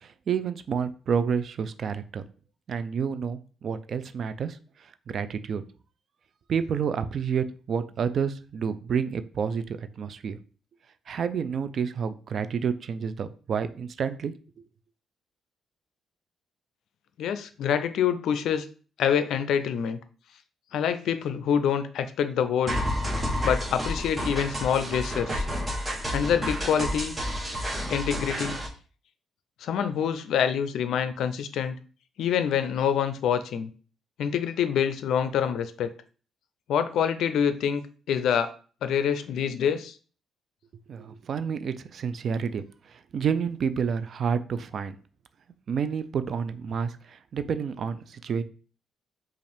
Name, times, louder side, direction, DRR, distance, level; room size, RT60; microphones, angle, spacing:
voice 1, 0.0-2.2 2.7-5.6 6.5-10.4 11.1-14.3 40.9-45.0 45.7-48.4, right 6 dB, 55° right, 12 dB, 0.4 m, -29 dB
voice 2, 17.2-18.7 19.0-20.0 20.7-22.8 23.4-25.5 26.1-27.1 27.9-28.6 29.6-31.8 32.2-33.7 34.2-35.9 36.7-38.5 38.8-40.0, left 8 dB, 75° left, 10 dB, 0.4 m, -26 dB
sound 1, 22.7-28.7, equal, 20° right, 1.5 m, -30 dB
5.1 x 2.5 x 3.4 m, 0.40 s
cardioid pair, 90°, 0 cm